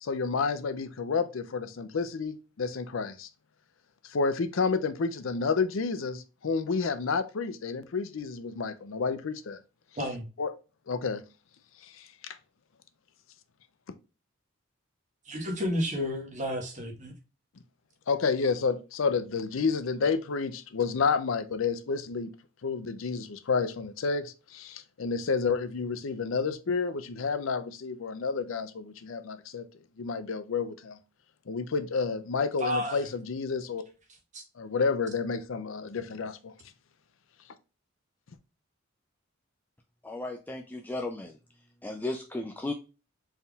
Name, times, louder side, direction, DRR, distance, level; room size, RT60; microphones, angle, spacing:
voice 1, 0.0-3.3 4.0-9.6 10.4-10.5 10.9-11.2 11.8-12.4 18.1-22.3 22.6-29.6 30.0-31.0 31.5-33.8 34.6-36.5, left 5 dB, 65° left, 0.5 m, -30 dB
voice 2, 15.3-17.1 32.6-33.0 34.3-34.4, equal, 35° right, 1.4 m, -31 dB
voice 3, 40.0-41.4 41.8-42.7, left 2 dB, 10° left, 0.3 m, -35 dB
4.3 x 3.6 x 2.3 m
head